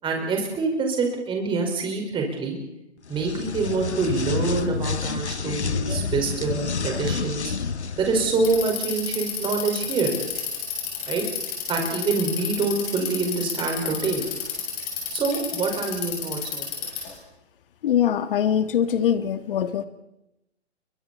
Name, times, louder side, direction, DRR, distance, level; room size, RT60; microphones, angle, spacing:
voice 1, 0.0-2.6 3.1-7.5 8.0-10.1 11.1-11.2 11.7-14.2 15.1-16.7, right 4 dB, 15° right, 1 dB, 4.9 m, -26 dB
sound 1, 3.0-8.7, left 5 dB, 80° left, 1.4 m, -29 dB
Bicycle, 8.3-17.2, left 9 dB, 25° left, 7.2 m, -31 dB
voice 2, 17.8-19.9, left 9 dB, 55° left, 11 dB, 1.5 m, -22 dB
29.5 x 23.5 x 4.3 m, 0.89 s
figure-of-eight pair, 130°, 33 cm